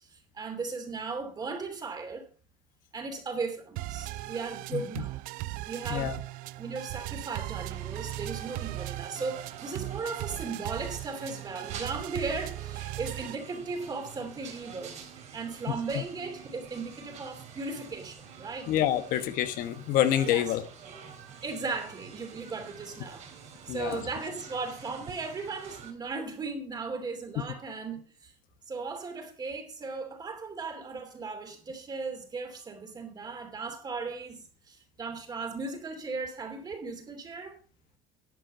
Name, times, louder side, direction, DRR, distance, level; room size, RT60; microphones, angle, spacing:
voice 1, 0.0-2.3 2.9-5.2 5.6-6.1 6.6-14.9 15.3-18.7 20.3-20.5 21.4-23.3 23.7-28.3 28.7-37.6, right 4 dB, 25° right, 2.9 m, -37 dB
sound 1, 3.8-13.4, right 18 dB, 75° right, 0.4 m, -38 dB
sound 2, 7.7-25.9, right 7 dB, 50° right, 3.2 m, -48 dB
voice 2, 18.7-20.6 23.7-24.1, left 12 dB, 70° left, 1.2 m, -27 dB
11.0 x 7.8 x 5.4 m
cardioid pair, 135°, 15 cm